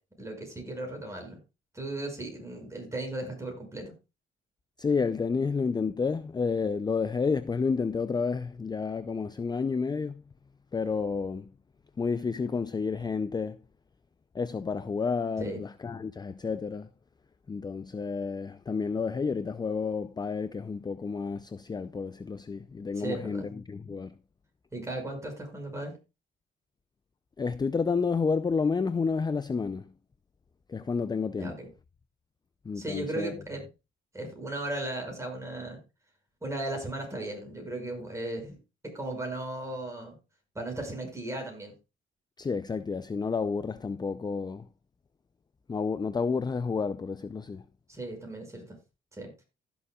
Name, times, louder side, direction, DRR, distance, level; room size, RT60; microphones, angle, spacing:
voice 1, 0.2-1.4 1.7-3.9 15.4-15.6 23.0-23.5 24.7-25.9 31.4-31.7 32.8-33.6 34.1-35.8 36.4-38.6 38.8-40.2 40.5-41.7 47.9-48.8 49.1-49.3, right 2 dB, 15° right, 5.8 m, -36 dB
voice 2, 4.8-10.2 10.7-11.5 12.0-13.6 14.3-16.9 17.5-24.2 27.4-29.9 30.7-31.6 32.6-33.4 42.4-44.7 45.7-47.6, left 5 dB, 20° left, 0.4 m, -30 dB
15.5 x 7.1 x 2.3 m
cardioid pair, 90°, 20 cm